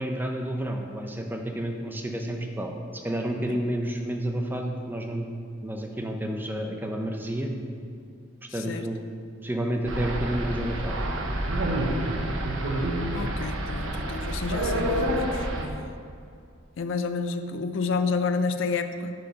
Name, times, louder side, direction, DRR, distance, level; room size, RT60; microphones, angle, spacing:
voice 1, 0.0-5.3 5.6-7.5 8.5-9.0 9.4-11.0, right 1 dB, 10° right, 3 dB, 0.4 m, -30 dB
voice 2, 8.5-8.9 13.1-15.9 16.8-19.1, left 4 dB, 70° left, 9 dB, 0.4 m, -30 dB
sound 1, 9.9-15.7, right 1 dB, 80° right, 0.8 m, -28 dB
5.3 x 5.1 x 5.7 m, 2.4 s
head